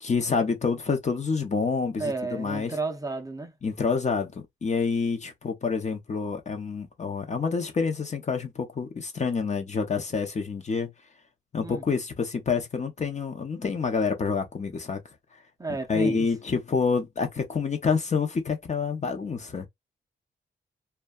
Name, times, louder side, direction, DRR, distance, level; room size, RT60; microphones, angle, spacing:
voice 1, 0.0-2.8 3.6-4.3 4.6-10.9 11.5-15.0 15.9-19.7, left 5 dB, 35° left, 0.6 m, -27 dB
voice 2, 2.0-3.5 11.6-11.8 15.6-16.2, right 3 dB, 20° right, 0.5 m, -32 dB
2.7 x 2.2 x 2.2 m
wide cardioid pair, 125°, 20 cm